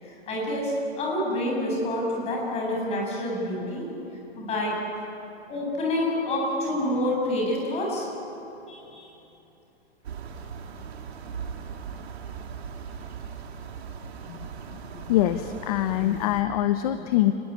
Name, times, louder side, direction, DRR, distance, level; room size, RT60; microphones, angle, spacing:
voice 1, 0.0-3.9 4.4-4.8 5.5-8.1 8.7-9.1, left 1 dB, 20° left, -2 dB, 7.7 m, -28 dB
sound 1, 10.0-16.4, right 6 dB, 70° right, 3.3 m, -39 dB
voice 2, 14.7-17.3, left 13 dB, 35° left, 10 dB, 0.9 m, -24 dB
29.5 x 20.5 x 9.8 m, 3.0 s
hypercardioid pair, 160°, 33 cm